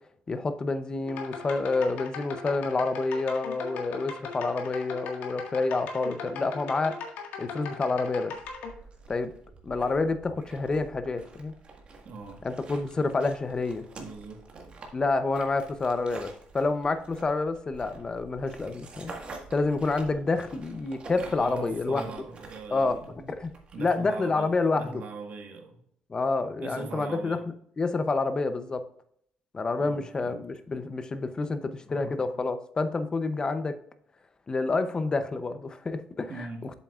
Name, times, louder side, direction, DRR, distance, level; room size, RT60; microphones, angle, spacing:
voice 1, 0.3-7.0 7.4-8.3 9.1-9.3 9.6-11.5 12.4-13.9 14.9-19.1 19.5-22.0 22.7-23.0 23.3-23.5 23.8-25.0 26.1-27.4 27.8-28.8 29.5-33.8 34.5-36.5, left 3 dB, 25° left, 10 dB, 0.7 m, -28 dB
sound 1, 1.0-8.7, left 5 dB, 90° left, 1.7 m, -39 dB
sound 2, 8.3-23.9, right 3 dB, 35° right, 1.6 m, -48 dB
voice 2, 12.0-12.4 14.0-14.8 21.2-23.3 23.7-25.8 26.6-27.4 29.8-30.4 36.3-36.7, right 4 dB, 60° right, 3 dB, 1.6 m, -41 dB
8.1 x 7.5 x 2.4 m, 0.66 s
cardioid pair, 125°, 3 cm